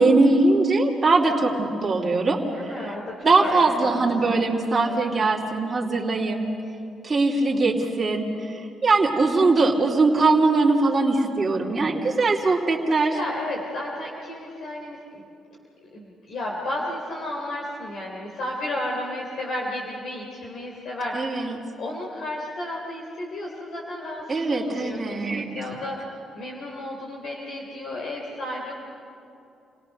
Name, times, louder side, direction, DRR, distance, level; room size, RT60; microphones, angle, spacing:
voice 1, 0.0-2.4 3.2-6.5 7.0-8.2 8.8-13.2 21.1-21.6 24.3-25.5, right 3 dB, 25° right, -4 dB, 2.9 m, -21 dB
voice 2, 2.4-4.1 4.7-5.0 13.1-15.2 15.9-21.5 21.8-26.1 26.3-28.7, left 1 dB, 65° left, -2 dB, 3.3 m, -33 dB
28.5 x 17.5 x 6.6 m, 2.8 s
cardioid pair, 90°, 0 cm